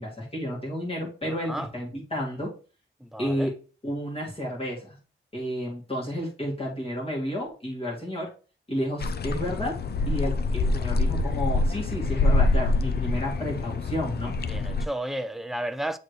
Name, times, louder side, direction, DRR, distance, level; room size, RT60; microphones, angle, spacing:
voice 1, 0.0-2.5 3.2-3.5 3.8-5.0 5.3-8.3 8.7-9.8 10.1-14.3, equal, 25° left, 2.1 m, -31 dB
voice 2, 3.0-3.5 14.5-16.0, right 1 dB, ahead, 0.4 m, -32 dB
sound 1, 9.0-14.9, left 2 dB, 50° left, 0.5 m, -25 dB
8.1 x 4.1 x 3.2 m
wide cardioid pair, 125°, 21 cm